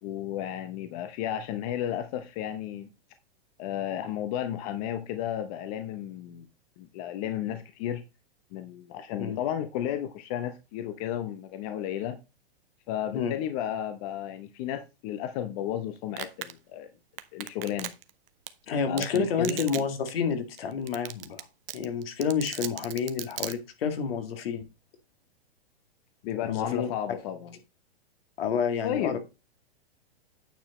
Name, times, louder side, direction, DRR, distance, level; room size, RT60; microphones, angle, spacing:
voice 1, 0.0-2.9 3.6-6.5 6.8-8.0 8.5-12.2 12.9-16.9 17.3-17.9 18.9-19.6 26.2-27.5 28.8-29.2, left 11 dB, 40° left, 0.8 m, -33 dB
Domestic sounds home sounds, 16.2-16.5 17.2-18.1 18.5-18.6 19.0-19.2 19.4-19.8 20.1-20.2 20.6-20.7 20.9-21.4 21.7-23.5, right 12 dB, 70° right, 1.0 m, -35 dB
voice 2, 18.7-21.5 21.7-24.6 26.4-26.9 28.4-29.2, left 6 dB, 70° left, 2.1 m, -29 dB
9.2 x 4.9 x 4.1 m
hypercardioid pair, 140°, 30 cm